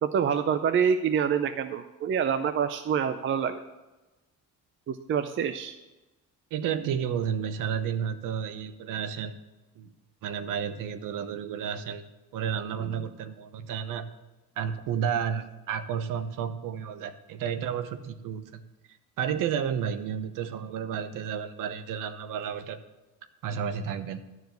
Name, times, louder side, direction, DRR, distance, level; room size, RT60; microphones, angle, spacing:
voice 1, 0.0-3.6 4.9-5.8, right 7 dB, 40° right, 9 dB, 0.5 m, -26 dB
voice 2, 6.5-9.3 9.8-9.9 10.2-12.0 12.3-14.1 14.6-18.6 19.2-22.8 23.4-24.2, right 8 dB, 75° right, 11 dB, 1.0 m, -31 dB
12.0 x 4.9 x 7.9 m, 1.1 s
cardioid pair, 125°, 32 cm